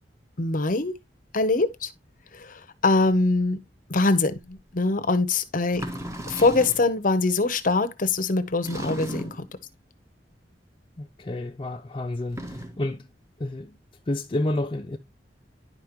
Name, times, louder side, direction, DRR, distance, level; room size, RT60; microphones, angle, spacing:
voice 1, 0.4-0.9 1.3-1.9 2.3-3.6 3.9-5.8 6.3-9.4, left 3 dB, 50° left, 0.9 m, -23 dB
sound 1, 4.5-4.6 5.7-6.9 8.6-9.5 12.2-12.9, right 1 dB, 15° right, 1.5 m, -35 dB
voice 2, 11.0-13.0 13.4-13.7 14.1-15.0, left 1 dB, 30° left, 0.5 m, -30 dB
10.5 x 5.1 x 3.0 m
head